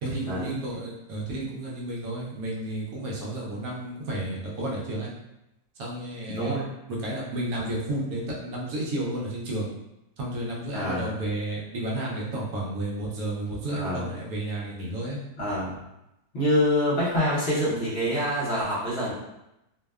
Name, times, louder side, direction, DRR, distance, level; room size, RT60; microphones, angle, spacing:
voice 1, 0.0-5.1 5.8-6.6 6.9-9.7 10.2-15.2, right 1 dB, 75° right, -4 dB, 1.1 m, -32 dB
voice 2, 6.3-6.7 10.7-11.1 13.7-14.1 15.4-15.8 16.3-19.1, equal, 50° left, -8 dB, 0.9 m, -26 dB
2.7 x 2.1 x 2.2 m, 0.90 s
omnidirectional pair, 1.6 m